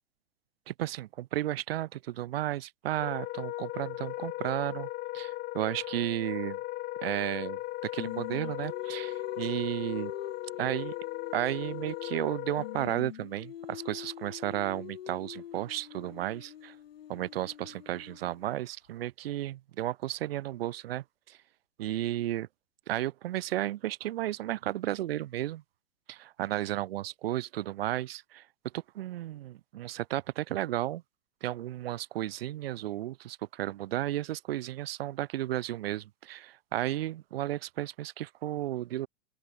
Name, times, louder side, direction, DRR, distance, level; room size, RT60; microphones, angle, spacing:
voice 1, 0.7-4.9 5.1-6.6 7.0-10.1 10.6-10.9 11.3-16.7 17.1-21.4 21.8-22.5 22.9-25.6 26.1-28.4 28.7-31.0 31.4-39.1, right 14 dB, 65° right, 0.5 m, -33 dB
Wind instrument woodwind instrument, 2.9-13.0, left 17 dB, 30° left, 1.2 m, -38 dB
Singing, 8.0-12.3 12.6-18.6, left 11 dB, 65° left, 4.1 m, -44 dB
open air
figure-of-eight pair, 100°, 32 cm